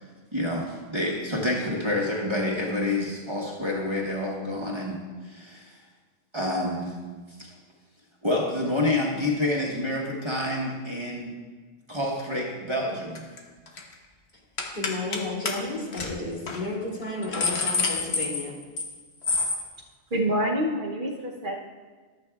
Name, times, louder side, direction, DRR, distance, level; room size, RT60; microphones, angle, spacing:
voice 1, 0.3-5.8 6.3-6.9 8.2-11.3 11.9-13.3, left 1 dB, 30° right, -3 dB, 1.2 m, -28 dB
sound 1, 13.1-13.4 13.7-13.9 14.6-15.2 15.5-15.6 15.9-16.1 16.5-16.6 17.0-18.9 19.2-19.6, left 4 dB, 90° left, 1.3 m, -27 dB
voice 2, 14.7-18.5, left 2 dB, 45° left, -5 dB, 2.2 m, -32 dB
voice 3, 20.1-21.6, equal, 55° right, 0 dB, 1.0 m, -26 dB
13.5 x 8.0 x 2.3 m, 1.4 s
omnidirectional pair, 1.1 m